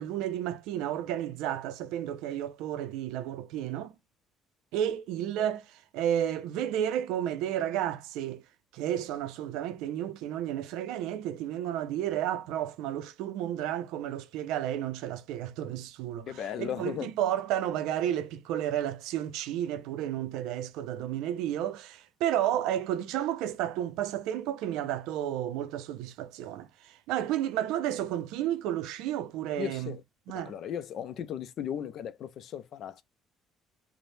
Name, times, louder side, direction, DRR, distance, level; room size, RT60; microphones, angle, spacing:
voice 1, 0.0-3.9 4.7-8.4 8.7-30.0 30.3-30.6, right 11 dB, 85° right, 0.4 m, -32 dB
voice 2, 16.3-17.1 29.6-30.0 30.3-33.0, left 9 dB, 55° left, 0.4 m, -36 dB
3.2 x 2.0 x 2.6 m
cardioid pair, 130°, 0 cm